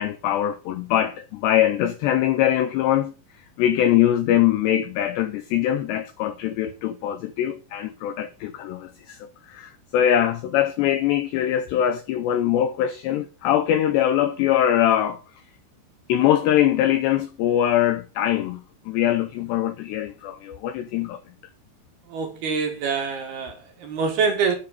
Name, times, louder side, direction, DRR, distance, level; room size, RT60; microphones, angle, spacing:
voice 1, 0.0-3.1 3.6-15.2 16.1-21.2, left 11 dB, 85° left, 2.4 m, -22 dB
voice 2, 22.1-24.6, right 5 dB, 60° right, 3.0 m, -25 dB
9.9 x 8.5 x 5.2 m
omnidirectional pair, 6.0 m